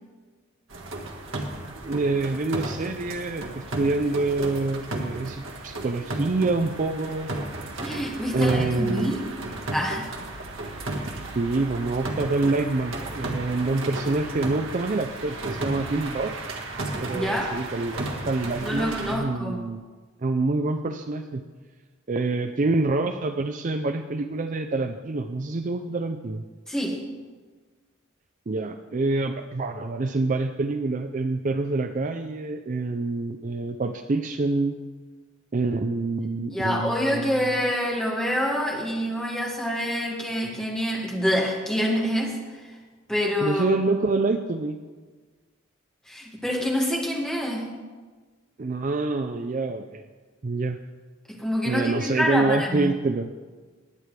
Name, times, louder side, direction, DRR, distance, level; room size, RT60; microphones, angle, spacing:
sound 1, 0.7-19.2, right 2 dB, 75° right, 1.7 m, -34 dB
voice 1, 1.8-7.3 8.3-9.1 11.3-16.3 17.0-19.8 20.2-21.4 22.1-26.4 28.5-34.7 35.5-37.4 43.4-44.8 48.6-50.0 50.4-50.8 51.6-53.3, right 3 dB, 40° right, 8 dB, 0.4 m, -26 dB
voice 2, 7.8-9.2 9.7-10.1 17.1-17.5 18.6-19.6 26.7-27.0 36.5-42.8 43.1-43.8 46.1-47.7 51.3-52.9, equal, 5° left, -3 dB, 2.0 m, -26 dB
19.5 x 9.0 x 3.3 m, 1.4 s
head